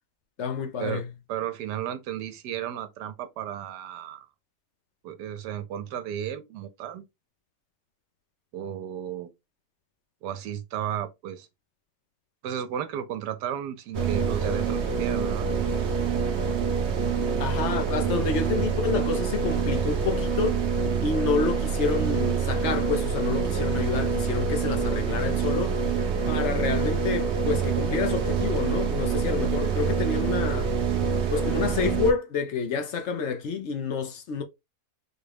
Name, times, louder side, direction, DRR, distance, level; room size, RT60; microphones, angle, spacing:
voice 1, 0.4-1.1 17.2-20.6 21.0-30.7 31.3-34.4, left 5 dB, 65° left, 0.7 m, -29 dB
voice 2, 1.3-4.3 5.0-7.1 8.5-9.3 10.2-11.5 12.4-15.5, right 10 dB, 80° right, 1.2 m, -33 dB
sound 1, 13.9-32.1, right 6 dB, 55° right, 0.8 m, -26 dB
3.8 x 2.2 x 3.3 m
omnidirectional pair, 1.8 m